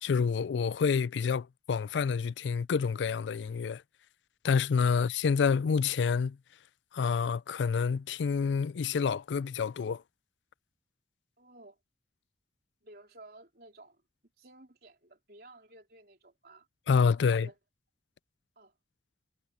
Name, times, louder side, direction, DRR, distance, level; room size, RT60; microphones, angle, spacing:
voice 1, 0.0-3.8 4.4-6.4 6.9-10.0 16.9-17.5, left 5 dB, 90° left, 0.4 m, -28 dB
voice 2, 11.4-11.8 12.8-14.0 14.4-16.7 17.2-17.6 18.6-18.7, right 2 dB, 60° right, 4.0 m, -54 dB
head